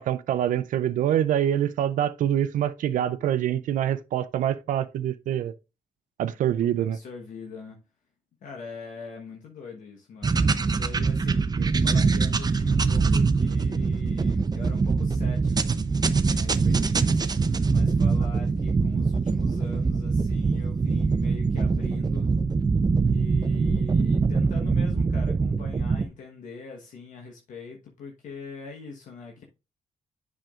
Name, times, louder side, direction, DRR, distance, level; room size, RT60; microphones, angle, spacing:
voice 1, 0.0-5.5 6.2-7.0, right 10 dB, 80° right, 0.5 m, -25 dB
voice 2, 6.9-7.8 8.4-11.5 11.8-15.7 16.3-17.3 17.7-22.3 23.1-29.4, left 5 dB, 75° left, 1.2 m, -42 dB
sound 1, 10.2-26.1, right 4 dB, 30° right, 0.6 m, -23 dB
7.5 x 6.1 x 2.5 m
cardioid pair, 70°, 13 cm